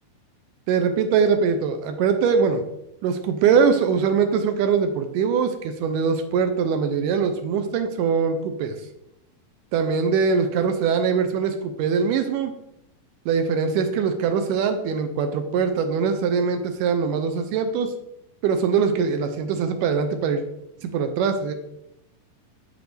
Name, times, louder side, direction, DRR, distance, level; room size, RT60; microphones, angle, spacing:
voice 1, 0.7-2.6 3.0-8.8 9.7-12.5 13.3-17.9 18.4-20.4 20.8-21.5, right 6 dB, 80° right, 7 dB, 2.1 m, -22 dB
7.2 x 6.2 x 3.3 m, 0.84 s
omnidirectional pair, 3.9 m